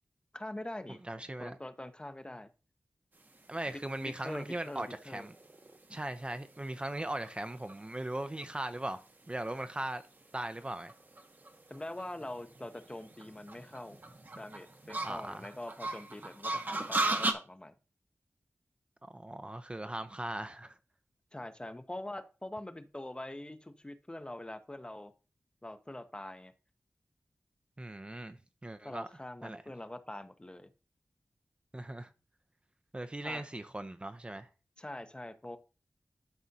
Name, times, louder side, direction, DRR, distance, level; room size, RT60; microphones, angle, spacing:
voice 1, 0.3-1.0 1.4-2.5 3.7-5.3 11.7-14.0 14.4-17.7 21.3-25.1 25.6-26.5 28.8-30.7 33.2-33.4 34.8-35.6, left 1 dB, 20° left, 0.6 m, -44 dB
voice 2, 1.0-1.6 3.5-5.3 5.9-9.0 9.3-10.0 10.3-10.9 15.0-15.4 19.0-20.8 27.8-29.1 29.4-29.6 31.7-32.1 32.9-34.5, right 1 dB, 20° right, 0.5 m, -39 dB
sound 1, 3.4-17.3, right 2 dB, 40° right, 0.9 m, -39 dB
11.5 x 4.8 x 2.7 m
wide cardioid pair, 90°, 5 cm